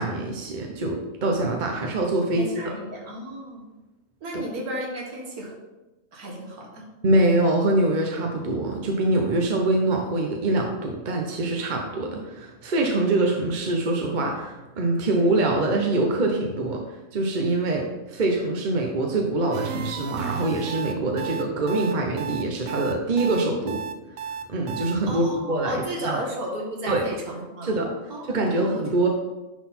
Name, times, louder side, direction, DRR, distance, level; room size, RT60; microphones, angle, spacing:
voice 1, 0.0-2.7 7.0-16.8 17.1-23.8 24.5-26.2 26.9-27.1 27.6-27.9 28.3-29.1, right 2 dB, 40° right, 1 dB, 0.8 m, -24 dB
voice 2, 2.4-3.7 4.2-5.5 6.1-6.9 25.1-27.8 28.1-28.8, right 1 dB, 90° right, -1 dB, 2.0 m, -34 dB
sound 1, 19.5-24.9, right 7 dB, 70° right, 0.9 m, -33 dB
10.5 x 4.0 x 4.3 m, 1.1 s
omnidirectional pair, 1.5 m